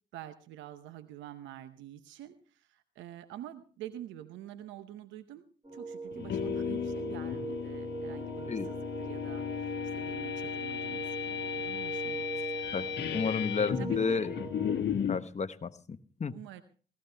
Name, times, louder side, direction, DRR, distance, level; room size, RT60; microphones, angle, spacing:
voice 1, 0.1-5.4 5.7-12.5 13.8-14.2 16.3-16.6, right 12 dB, 85° right, 12 dB, 0.8 m, -47 dB
sound 1, 5.6-14.7, right 3 dB, 25° right, 3.3 m, -41 dB
sound 2, 6.1-15.3, left 8 dB, 65° left, 1.2 m, -35 dB
voice 2, 12.7-14.3 15.1-16.3, left 5 dB, 35° left, 11 dB, 1.0 m, -32 dB
17.5 x 14.0 x 3.4 m, 0.40 s
hypercardioid pair, 45°, 19 cm